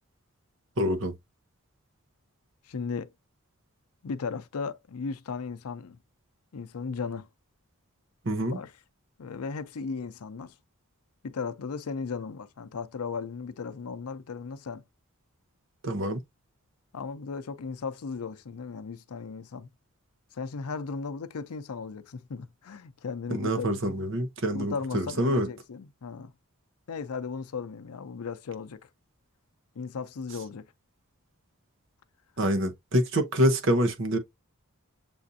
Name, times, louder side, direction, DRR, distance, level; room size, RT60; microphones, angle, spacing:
voice 1, 0.8-1.1 8.2-8.6 15.8-16.2 23.3-25.5 32.4-34.2, equal, 55° right, 0.8 m, -26 dB
voice 2, 2.6-3.1 4.0-6.0 6.5-7.3 8.5-8.7 9.2-10.6 11.2-14.8 16.9-19.7 20.3-24.0 24.5-26.3 26.9-28.9 29.7-30.7, left 5 dB, 85° left, 0.5 m, -36 dB
6.9 x 2.5 x 2.6 m
head